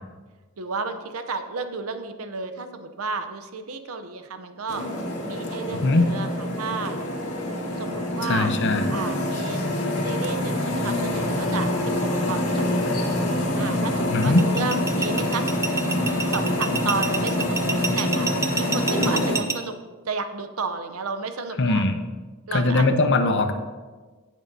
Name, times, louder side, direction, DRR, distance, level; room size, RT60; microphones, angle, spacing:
voice 1, 0.6-4.8 5.2-7.0 7.8-8.5 8.9-9.6 10.0-12.7 13.6-15.5 16.3-18.3 18.6-19.8 20.1-21.8 22.5-22.9, right 4 dB, 75° right, 8 dB, 0.7 m, -32 dB
sound 1, 4.7-19.4, left 1 dB, 90° left, 1.8 m, -26 dB
voice 2, 8.2-8.9 14.1-14.4 21.6-22.0 22.5-23.5, left 2 dB, 55° left, 7 dB, 0.8 m, -20 dB
sound 2, 14.2-19.6, right 4 dB, 15° right, 0.6 m, -27 dB
16.5 x 6.3 x 2.7 m, 1.4 s
head